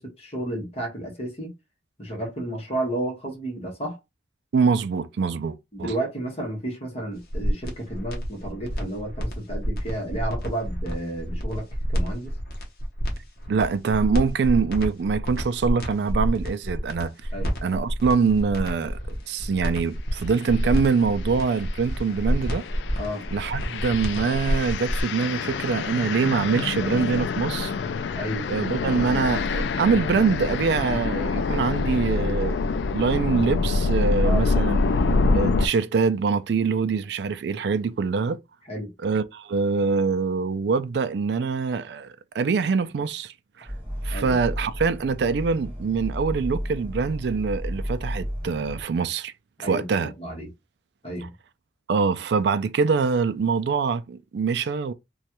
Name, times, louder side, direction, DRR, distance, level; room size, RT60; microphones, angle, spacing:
voice 1, 0.0-1.5 2.0-4.0 5.7-11.6 11.9-12.3 17.3-17.5 23.0-23.2 28.2-28.5 34.2-34.4 38.7-38.9 44.1-44.4 49.6-50.5 51.0-51.3, right 1 dB, 35° left, 1.2 m, -32 dB
voice 2, 4.5-5.9 13.5-17.1 17.6-22.6 23.3-27.7 28.5-34.8 35.3-38.4 39.0-43.7 44.0-49.3 49.6-50.1 51.9-54.9, right 5 dB, 70° right, 0.3 m, -24 dB
sound 1, 7.2-25.0, equal, 55° left, 0.9 m, -28 dB
sound 2, 20.4-20.7 21.2-35.7, left 3 dB, 75° left, 0.3 m, -26 dB
sound 3, 43.7-48.8, equal, 15° left, 1.4 m, -32 dB
3.1 x 2.3 x 2.9 m
head